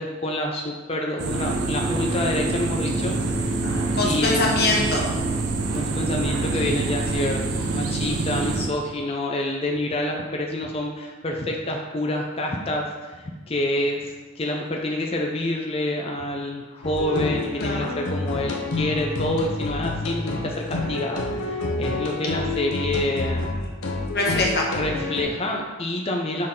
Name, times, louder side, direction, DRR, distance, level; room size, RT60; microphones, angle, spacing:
voice 1, 0.0-4.4 5.7-7.4 7.7-23.5 24.7-26.5, left 1 dB, 25° left, 1 dB, 0.5 m, -27 dB
sound 1, 1.2-8.7, right 3 dB, 90° right, 0.7 m, -25 dB
voice 2, 3.6-5.0 17.6-18.0 24.1-24.7, left 2 dB, 50° left, -1 dB, 1.1 m, -24 dB
sound 2, 16.8-25.2, left 2 dB, 90° left, 0.8 m, -28 dB
6.5 x 4.0 x 3.7 m, 1.3 s
head